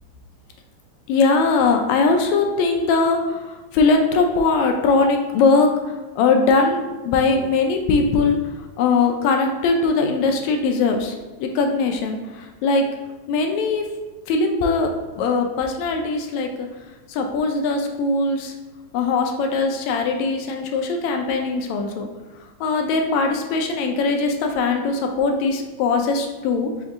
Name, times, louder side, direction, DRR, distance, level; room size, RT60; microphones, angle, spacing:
voice 1, 1.1-8.4 8.8-12.8 13.3-13.9 14.3-14.9 15.2-16.7 17.1-18.5 18.9-22.1 22.6-26.7, left 4 dB, 80° left, 3 dB, 1.8 m, -20 dB
5.3 x 2.7 x 3.6 m, 1.2 s
omnidirectional pair, 3.3 m